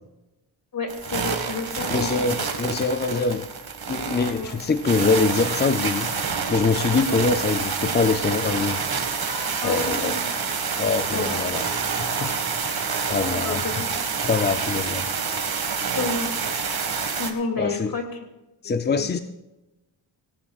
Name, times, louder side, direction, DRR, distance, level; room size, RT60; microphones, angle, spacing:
voice 1, 0.7-2.3 4.3-4.6 7.1-7.2 9.6-10.3 11.1-11.4 13.4-13.9 15.9-16.3 17.2-18.0 19.0-19.1, left 4 dB, 45° left, 3 dB, 2.6 m, -30 dB
sound 1, 0.9-17.3, right 5 dB, 50° right, 1.8 m, -27 dB
voice 2, 1.9-3.5 3.9-6.1 6.5-10.4 10.8-11.7 12.0-12.3 12.7-13.8 14.2-15.1 17.6-17.9 18.6-19.2, left 4 dB, 25° left, 9 dB, 0.4 m, -24 dB
18.5 x 17.5 x 2.4 m, 1.0 s
wide cardioid pair, 110°, 46 cm